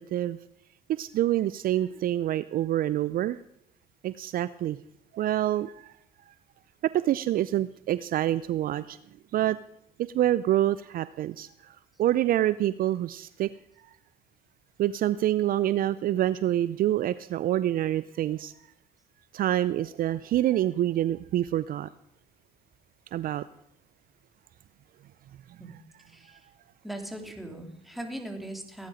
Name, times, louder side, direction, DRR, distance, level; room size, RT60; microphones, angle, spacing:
voice 1, 0.9-3.4 4.0-4.8 5.1-5.8 6.9-9.0 9.3-9.6 10.1-11.5 12.0-13.5 14.8-18.5 19.3-21.9 23.1-23.4, right 13 dB, 55° right, 17 dB, 0.5 m, -26 dB
voice 2, 26.1-26.4 26.8-28.9, right 1 dB, ahead, 3 dB, 3.3 m, -39 dB
17.5 x 10.5 x 5.1 m, 0.77 s
supercardioid pair, 70°, 18 cm